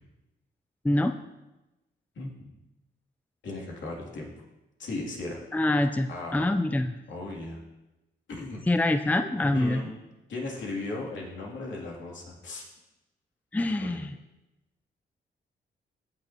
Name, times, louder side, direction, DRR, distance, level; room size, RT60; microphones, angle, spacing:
voice 1, 0.8-1.1 5.5-6.9 8.7-9.8 13.5-14.1, left 1 dB, 10° left, 8 dB, 0.5 m, -25 dB
voice 2, 3.4-4.3 4.8-5.4 6.1-6.4 7.1-7.6 8.3-8.6 9.4-9.9 10.3-12.6 13.6-14.0, left 2 dB, 75° left, -3 dB, 2.8 m, -36 dB
16.0 x 6.6 x 2.9 m, 0.99 s
cardioid pair, 65°, 19 cm